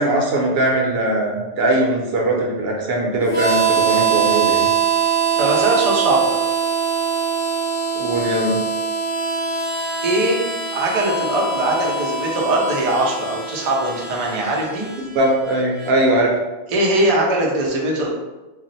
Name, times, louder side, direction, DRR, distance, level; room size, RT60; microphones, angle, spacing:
voice 1, 0.0-4.7 7.9-8.6 15.0-16.3, right 1 dB, 60° right, -1 dB, 0.7 m, -20 dB
Harmonica, 3.3-15.9, right 6 dB, 10° left, 0.7 m, -23 dB
voice 2, 5.4-6.4 10.0-10.4 10.7-14.9 16.7-18.1, right 1 dB, 80° right, -2 dB, 0.3 m, -20 dB
2.4 x 2.0 x 3.9 m, 1.1 s
omnidirectional pair, 1.4 m